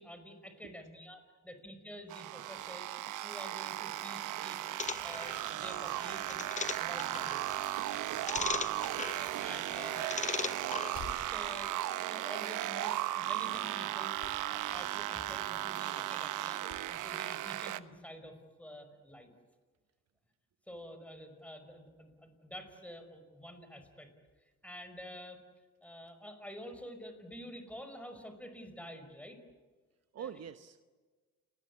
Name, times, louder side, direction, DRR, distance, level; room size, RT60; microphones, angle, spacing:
voice 1, 0.0-2.9 3.2-4.6 5.0-6.5 6.8-7.6 9.0-10.9 11.3-14.1 14.5-19.3 20.7-24.1 24.6-25.4 25.8-29.4 30.2-30.3, equal, 5° left, 8 dB, 5.5 m, -49 dB
sound 1, 2.1-17.8, right 14 dB, 85° right, 1.0 m, -36 dB
sound 2, 4.8-11.2, left 5 dB, 25° left, 0.7 m, -40 dB
sound 3, 8.3-9.1 10.8-11.5 12.3-12.6 13.1-13.2 14.2-14.4 14.7-14.8 16.7-16.8 17.2-17.3, left 5 dB, 65° left, 6.0 m, -49 dB
voice 2, 8.5-8.8 9.2-9.6 30.1-30.8, right 8 dB, 55° right, 10 dB, 1.1 m, -47 dB
29.0 x 20.0 x 8.4 m, 1.4 s
cardioid pair, 90°, 30 cm